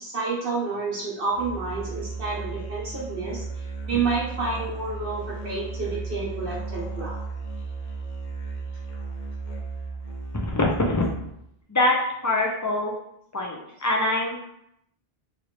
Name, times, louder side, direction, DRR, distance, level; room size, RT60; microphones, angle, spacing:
voice 1, 0.0-7.2, right 4 dB, 65° right, -5 dB, 1.1 m, -29 dB
Musical instrument, 1.3-11.5, right 3 dB, 55° left, 0.7 m, -35 dB
voice 2, 10.3-11.1 11.7-12.9 13.3-14.4, left 2 dB, 30° left, 0 dB, 0.3 m, -24 dB
3.1 x 2.6 x 3.1 m, 0.76 s
omnidirectional pair, 1.0 m